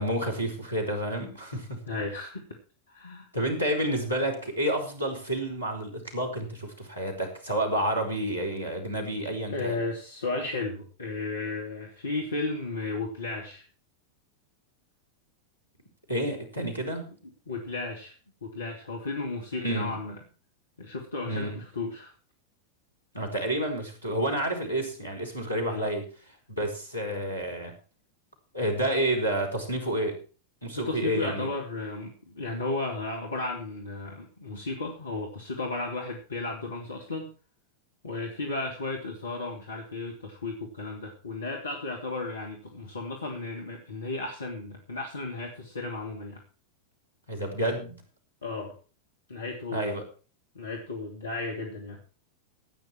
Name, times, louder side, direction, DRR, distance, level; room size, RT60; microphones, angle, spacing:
voice 1, 0.0-1.8 3.3-9.8 16.1-17.1 19.6-20.0 21.2-21.6 23.1-26.1 26.6-27.8 28.5-30.2 30.6-31.5 47.3-48.0 49.7-50.0, right 1 dB, 90° left, 2 dB, 4.6 m, -29 dB
voice 2, 1.9-2.4 2.9-3.3 9.5-13.7 17.2-18.1 18.4-20.2 20.8-22.1 25.6-25.9 30.7-37.3 38.0-46.4 48.4-48.8 49.3-50.0 50.5-52.0, left 3 dB, 70° left, 1 dB, 2.7 m, -34 dB
16.0 x 9.4 x 4.6 m, 0.36 s
figure-of-eight pair, 90°, 0 cm